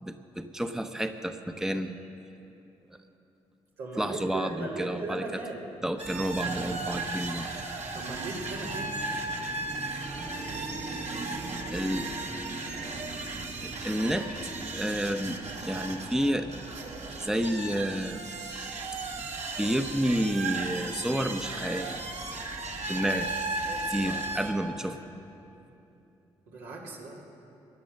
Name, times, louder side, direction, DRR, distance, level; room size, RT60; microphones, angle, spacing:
voice 1, 0.0-2.0 4.0-5.4 5.8-7.5 11.7-12.1 13.6-14.2 14.7-16.5 17.2-18.2 19.6-22.0 22.9-23.3 23.9-25.0, equal, 5° right, 7 dB, 0.9 m, -30 dB
voice 2, 3.8-5.7 7.9-9.0 23.0-23.3 23.6-24.4 26.5-27.2, right 2 dB, 80° right, -4 dB, 2.5 m, -38 dB
sound 1, 6.0-24.5, right 3 dB, 50° right, 1.8 m, -35 dB
16.5 x 10.5 x 6.5 m, 2.8 s
hypercardioid pair, 40°, 14 cm